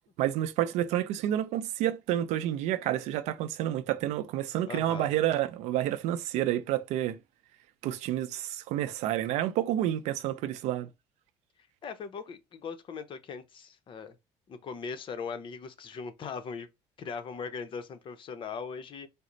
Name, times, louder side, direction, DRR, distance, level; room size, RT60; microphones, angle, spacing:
voice 1, 0.2-7.2 7.8-10.9, right 12 dB, 80° right, 0.5 m, -29 dB
voice 2, 4.7-5.1 11.8-14.1 14.5-16.7 17.0-19.1, left 5 dB, 45° left, 0.7 m, -39 dB
4.2 x 2.0 x 3.8 m
cardioid pair, 105°, 12 cm